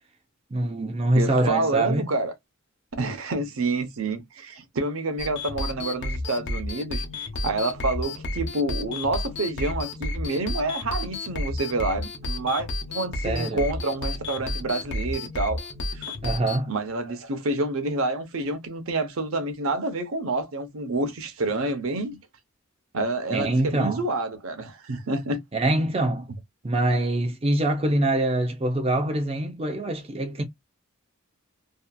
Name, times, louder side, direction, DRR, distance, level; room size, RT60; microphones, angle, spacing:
voice 1, 0.5-2.1 13.2-13.6 16.2-16.7 23.3-24.0 25.5-26.3 26.6-30.4, right 1 dB, 30° right, 0.6 m, -24 dB
voice 2, 1.2-2.3 3.0-15.6 15.9-16.2 16.7-22.2 22.9-25.4, right 2 dB, 70° right, 0.7 m, -28 dB
sound 1, 5.2-16.6, left 2 dB, 55° left, 0.8 m, -32 dB
2.8 x 2.4 x 2.2 m
head